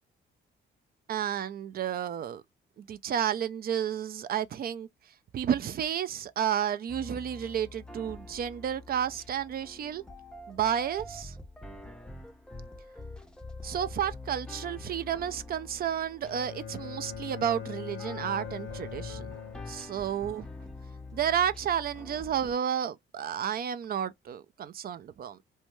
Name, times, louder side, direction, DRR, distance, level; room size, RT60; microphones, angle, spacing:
voice 1, 1.1-2.4 2.8-4.9 5.3-10.0 10.5-11.4 13.6-19.4 19.7-20.5 21.1-25.4, right 9 dB, 50° right, 0.4 m, -31 dB
sound 1, 6.9-22.5, left 2 dB, 5° left, 0.6 m, -45 dB
Bowed string instrument, 16.2-20.3, left 7 dB, 85° left, 0.7 m, -41 dB
2.7 x 2.2 x 3.0 m
cardioid pair, 90°, 20 cm